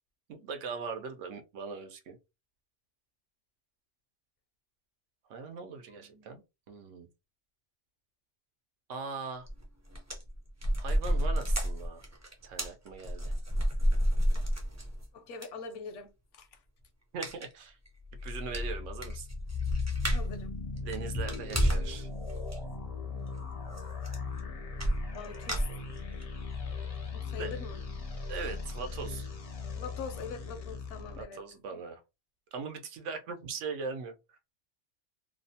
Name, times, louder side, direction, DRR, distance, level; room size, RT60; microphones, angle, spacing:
voice 1, 0.3-2.2 5.3-6.4 6.7-7.1 8.9-9.5 10.8-12.0 12.4-13.3 17.1-17.8 18.2-19.3 20.8-22.1 27.4-27.6 28.3-29.3 31.2-32.0 32.5-34.4, right 5 dB, 85° right, 1.0 m, -40 dB
voice 2, 5.9-6.3 15.1-16.6 20.1-20.5 25.1-25.8 27.1-27.8 29.8-31.4 31.7-31.8, left 5 dB, 80° left, 1.0 m, -43 dB
sound 1, 9.5-9.6 9.9-15.0 15.4-15.5 17.2-17.5 17.9-18.0 18.3-18.4 18.5-20.4 20.8-22.0 22.3-22.6 23.8-23.9 24.0-24.4 24.8-26.2 26.7-26.8 27.1-27.2, equal, 30° right, 0.3 m, -30 dB
sound 2, 18.0-31.2, left 4 dB, 50° left, 0.4 m, -38 dB
2.8 x 2.1 x 2.6 m
omnidirectional pair, 1.2 m